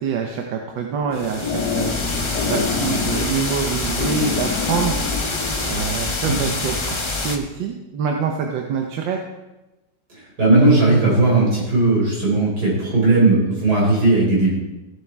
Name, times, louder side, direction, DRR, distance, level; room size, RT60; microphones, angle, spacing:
voice 1, 0.0-2.0 2.4-5.4 5.7-7.0 7.2-9.2, right 6 dB, 85° right, 2 dB, 1.6 m, -25 dB
sound 1, 0.9-5.9, left 5 dB, 70° left, 1.9 m, -27 dB
sound 2, 1.1-7.4, left 3 dB, 30° left, 0.5 m, -26 dB
voice 2, 10.1-14.5, right 2 dB, 60° right, -4 dB, 4.9 m, -17 dB
15.0 x 7.3 x 4.5 m, 1.0 s
omnidirectional pair, 1.9 m